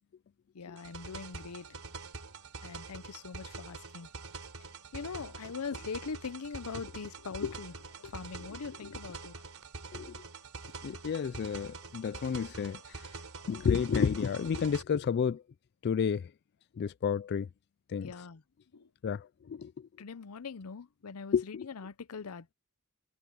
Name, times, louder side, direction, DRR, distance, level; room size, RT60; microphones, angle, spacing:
voice 1, 0.5-1.8 2.6-4.1 4.9-9.3 18.0-18.4 18.7-18.9 20.0-22.5, left 5 dB, 90° left, 0.7 m, -41 dB
sound 1, 0.8-14.8, right 4 dB, 75° right, 4.1 m, -45 dB
voice 2, 9.9-10.2 10.8-13.1 13.5-15.4 15.8-16.3 16.8-17.5 17.9-18.1 19.0-19.9 21.3-21.7, left 6 dB, 50° left, 0.3 m, -31 dB
head